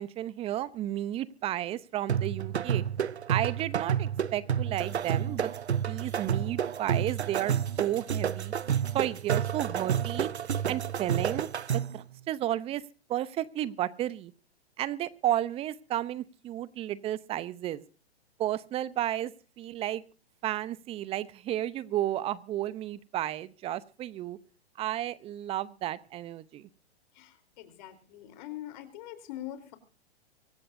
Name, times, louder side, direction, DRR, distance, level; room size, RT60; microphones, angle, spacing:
voice 1, 0.0-2.8 3.3-8.5 8.9-10.3 10.7-11.5 11.9-12.8 13.1-14.3 14.8-17.8 18.4-20.0 20.4-24.4 24.8-26.7, right 13 dB, 20° right, 18 dB, 0.7 m, -32 dB
sound 1, 2.1-12.0, right 8 dB, 85° right, 0.7 m, -30 dB
voice 2, 27.1-29.8, left 13 dB, 45° left, 10 dB, 3.9 m, -43 dB
25.0 x 14.5 x 2.7 m, 0.36 s
hypercardioid pair, 125°, 32 cm